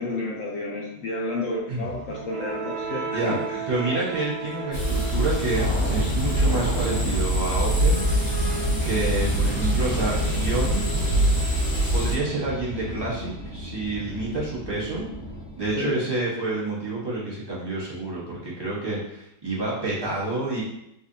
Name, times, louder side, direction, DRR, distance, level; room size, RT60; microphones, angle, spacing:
voice 1, 0.0-4.0 15.8-15.9, left 2 dB, 70° left, -3 dB, 0.8 m, -31 dB
sound 1, 1.8-13.7, right 4 dB, 90° right, 1.4 m, -36 dB
voice 2, 3.7-8.3 8.8-10.8 11.9-15.1 15.6-20.6, right 2 dB, 20° right, -7 dB, 0.7 m, -28 dB
sound 2, 4.7-12.1, right 1 dB, 50° left, 1.2 m, -24 dB
sound 3, 5.5-15.9, equal, 15° left, 1.0 m, -33 dB
3.7 x 3.2 x 2.6 m, 0.79 s
omnidirectional pair, 1.8 m